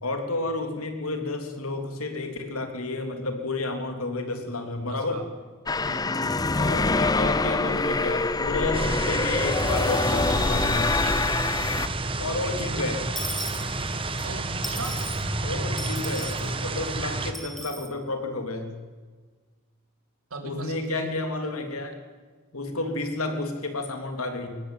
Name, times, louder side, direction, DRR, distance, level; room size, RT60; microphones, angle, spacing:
voice 1, 0.0-5.2 6.5-10.9 12.2-13.1 15.4-18.7 20.4-22.0 22.5-24.6, left 2 dB, 90° left, 6 dB, 3.2 m, -31 dB
voice 2, 4.9-5.3 5.8-6.5 12.2-12.5 14.2-15.0 20.3-21.1, right 2 dB, 85° right, 4 dB, 3.8 m, -39 dB
sound 1, 5.7-11.9, left 3 dB, 20° left, 0.6 m, -25 dB
sound 2, 8.7-17.3, right 2 dB, 25° right, 1.4 m, -30 dB
Dishes pots and pans / Coin (dropping), 13.1-14.3 14.6-15.2 15.8-16.5 17.3-17.9, equal, ahead, 2.0 m, -36 dB
22.0 x 18.5 x 9.1 m, 1.4 s
head